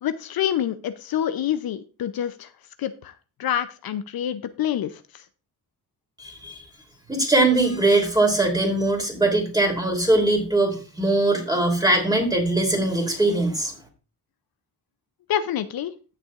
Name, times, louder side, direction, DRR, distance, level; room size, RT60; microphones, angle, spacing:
voice 1, 0.0-2.5 2.8-3.1 3.4-5.2 15.3-15.9, left 10 dB, 65° left, 11 dB, 0.6 m, -27 dB
voice 2, 6.2-6.6 7.1-13.7, right 2 dB, 10° right, 2 dB, 3.1 m, -21 dB
15.5 x 6.8 x 2.4 m, 0.34 s
cardioid pair, 115°, 39 cm